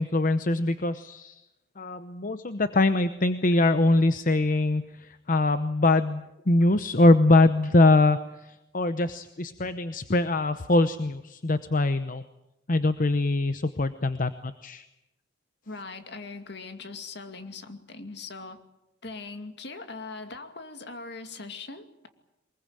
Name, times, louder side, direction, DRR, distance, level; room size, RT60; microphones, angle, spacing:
voice 1, 0.0-1.4 1.8-12.2 12.7-14.9, left 2 dB, 45° left, 11 dB, 0.9 m, -23 dB
voice 2, 15.7-18.6 19.0-22.1, left 3 dB, 60° left, 7 dB, 2.4 m, -40 dB
24.0 x 21.5 x 9.0 m, 0.92 s
head